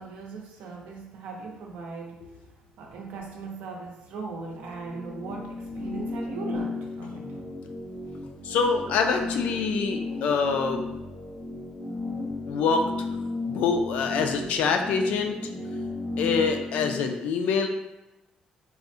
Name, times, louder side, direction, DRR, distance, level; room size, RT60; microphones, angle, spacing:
voice 1, 0.0-7.4, right 4 dB, 85° right, 1 dB, 0.5 m, -39 dB
sound 1, 4.5-17.0, left 3 dB, 25° right, 0.8 m, -34 dB
voice 2, 8.4-10.8 12.5-12.9 13.5-15.4 16.2-17.7, left 5 dB, 70° left, 5 dB, 0.3 m, -25 dB
3.6 x 2.1 x 2.6 m, 0.98 s
cardioid pair, 180°, 2 cm